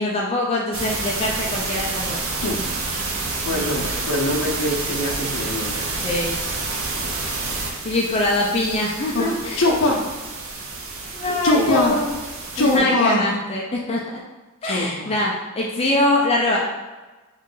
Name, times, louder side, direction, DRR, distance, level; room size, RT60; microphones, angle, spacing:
voice 1, 0.0-2.2 3.5-3.9 6.0-6.4 7.8-9.6 11.1-12.1 12.6-14.0 14.6-16.6, left 1 dB, 30° left, -3 dB, 0.5 m, -23 dB
sound 1, 0.7-12.8, right 3 dB, 80° right, 0.7 m, -29 dB
voice 2, 3.4-5.8 9.1-10.0 11.2-12.0 12.5-13.3 14.6-15.1, left 1 dB, 65° left, -2 dB, 0.7 m, -22 dB
3.7 x 3.1 x 3.8 m, 1.2 s
head